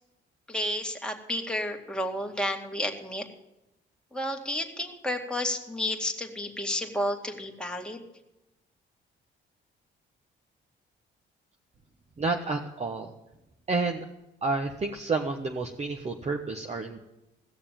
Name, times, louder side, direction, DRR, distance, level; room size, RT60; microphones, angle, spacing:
voice 1, 0.5-3.3 4.1-8.0, left 1 dB, 5° left, 2 dB, 2.1 m, -31 dB
voice 2, 12.2-13.1 13.7-14.1 14.4-17.0, right 3 dB, 35° right, 3 dB, 1.2 m, -30 dB
16.5 x 6.8 x 9.0 m, 0.93 s
cardioid pair, 90°, 20 cm